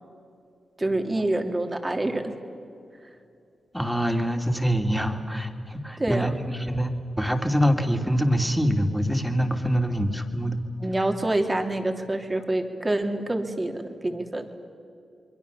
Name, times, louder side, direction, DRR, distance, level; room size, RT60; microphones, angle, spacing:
voice 1, 0.8-2.3 6.0-6.4 10.8-14.5, right 1 dB, 30° right, 4 dB, 3.0 m, -27 dB
voice 2, 3.7-10.6, equal, ahead, 4 dB, 3.1 m, -25 dB
28.0 x 22.5 x 7.1 m, 2.6 s
supercardioid pair, 45°, 0 cm